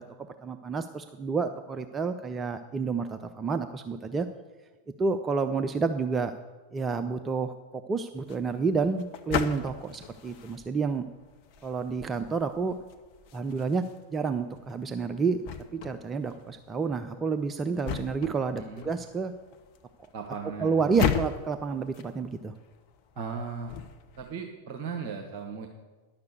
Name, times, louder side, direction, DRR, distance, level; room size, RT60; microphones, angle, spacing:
voice 1, 0.0-4.3 5.0-6.3 6.7-11.1 11.6-12.7 13.3-13.8 14.1-15.4 15.7-19.3 20.6-22.5, right 4 dB, 20° right, 8 dB, 0.5 m, -29 dB
sound 1, 8.2-24.3, left 8 dB, 45° left, 0.9 m, -38 dB
voice 2, 18.6-18.9 20.1-21.0 23.1-23.7 24.2-25.7, right 5 dB, 45° right, 3 dB, 1.1 m, -37 dB
10.5 x 6.6 x 8.0 m, 1.3 s
figure-of-eight pair, 90°, 0 cm